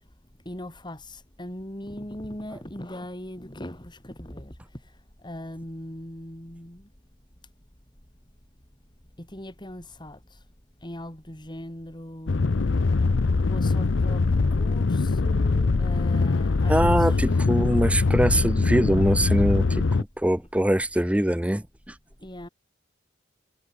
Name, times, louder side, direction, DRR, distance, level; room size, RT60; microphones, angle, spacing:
voice 1, 0.5-4.6 5.2-6.8 9.2-10.4 10.8-12.6 13.5-17.2 22.2-22.5, left 1 dB, 25° left, 4.4 m, -39 dB
sound 1, 12.3-20.0, left 3 dB, 90° left, 0.6 m, -22 dB
voice 2, 16.7-19.7 20.0-21.9, right 1 dB, 5° right, 0.9 m, -23 dB
head